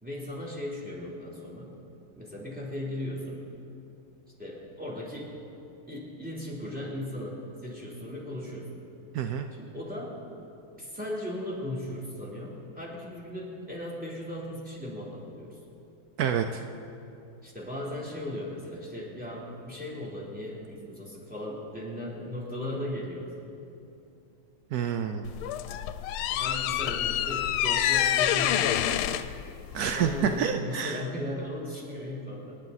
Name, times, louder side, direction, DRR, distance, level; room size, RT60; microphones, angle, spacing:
voice 1, 0.0-1.8 2.2-3.5 4.4-5.4 5.9-8.8 9.5-10.2 10.8-15.6 17.4-23.5 26.3-29.3 29.8-32.6, left 1 dB, 5° right, -4 dB, 3.1 m, -37 dB
voice 2, 9.1-9.5 16.2-16.6 24.7-25.3 29.7-31.0, right 8 dB, 80° right, 6 dB, 0.8 m, -28 dB
sound 1, 25.2-30.4, left 11 dB, 85° left, 1.5 m, -27 dB
26.0 x 11.0 x 4.1 m, 2.7 s
omnidirectional pair, 2.3 m